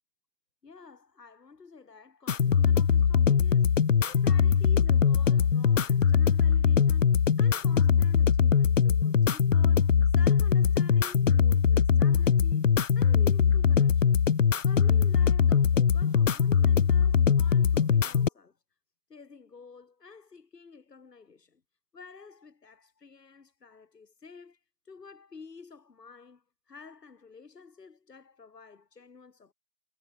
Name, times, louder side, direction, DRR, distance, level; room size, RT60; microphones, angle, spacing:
voice 1, 0.6-12.7 12.9-14.2 14.6-18.6 19.1-21.6 21.9-24.6 24.9-29.5, left 5 dB, 80° left, 4.6 m, -50 dB
sound 1, 2.3-18.3, left 7 dB, 55° left, 0.5 m, -22 dB
hypercardioid pair, 175°, 48 cm